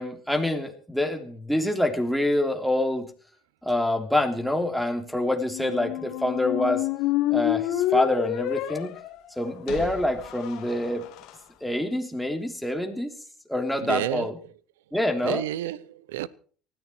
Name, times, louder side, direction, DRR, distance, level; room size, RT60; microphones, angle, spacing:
voice 1, 0.0-3.1 3.6-6.9 7.3-9.0 9.4-11.0 11.6-13.1 13.5-14.4 14.9-15.4, left 1 dB, ahead, 3.3 m, -26 dB
sound 1, 5.4-11.3, left 14 dB, 65° left, 2.1 m, -29 dB
voice 2, 13.8-14.3 15.2-16.3, right 13 dB, 85° right, 0.7 m, -30 dB
19.0 x 13.5 x 4.5 m
hypercardioid pair, 75°, 0 cm